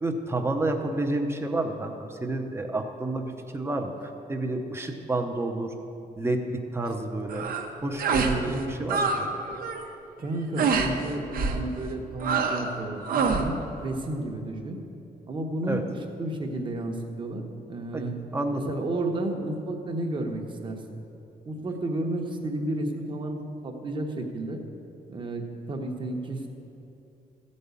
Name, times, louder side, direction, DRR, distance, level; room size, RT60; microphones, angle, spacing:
voice 1, 0.0-5.7 6.2-7.5 7.8-9.3 15.7-15.8 17.9-18.1 18.3-18.6, right 2 dB, 15° right, 4 dB, 0.8 m, -30 dB
sound 1, 7.3-7.7 8.0-8.4 8.6-9.2 9.5-9.8 10.6-10.9 11.3-11.6 12.2-12.7 13.1-13.5, right 5 dB, 65° right, 1.0 m, -26 dB
voice 2, 8.4-8.9 10.2-14.8 15.3-18.2 18.5-20.8 21.5-24.6 25.1-26.5, right 1 dB, 30° right, 3 dB, 1.1 m, -32 dB
14.0 x 5.4 x 8.2 m, 2.8 s
cardioid pair, 155°, 16 cm